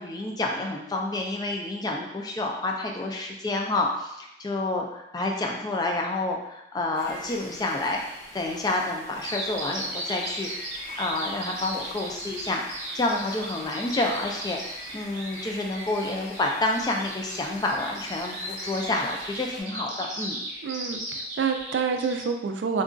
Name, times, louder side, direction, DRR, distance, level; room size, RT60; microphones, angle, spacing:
voice 1, 0.0-8.0 8.3-10.5 11.0-20.4, left 2 dB, 20° left, 1 dB, 0.3 m, -29 dB
sound 1, 6.9-19.6, left 1 dB, 60° left, 1.0 m, -44 dB
Bird vocalization bird call bird song, 9.2-22.2, right 1 dB, 40° right, 0.8 m, -37 dB
voice 2, 20.6-22.8, right 5 dB, 75° right, 5 dB, 0.3 m, -28 dB
3.7 x 2.3 x 2.5 m, 0.85 s
head